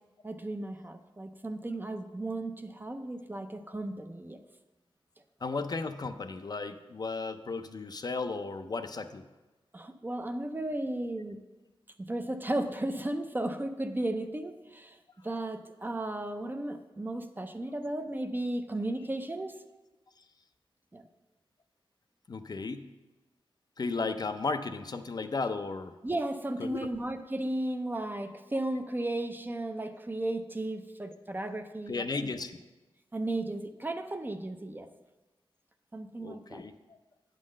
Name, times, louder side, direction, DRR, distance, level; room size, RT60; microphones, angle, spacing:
voice 1, 0.2-4.4 9.7-11.4 12.0-15.0 15.2-19.6 20.9-21.1 26.0-32.0 33.1-34.9 35.9-36.6, right 1 dB, 20° right, 8 dB, 0.5 m, -35 dB
voice 2, 5.4-9.2 22.3-22.9 23.8-25.9 26.6-26.8 31.9-32.6 36.2-37.0, left 4 dB, 45° left, 8 dB, 0.4 m, -34 dB
8.6 x 3.8 x 6.3 m, 1.1 s
wide cardioid pair, 80°, 10 cm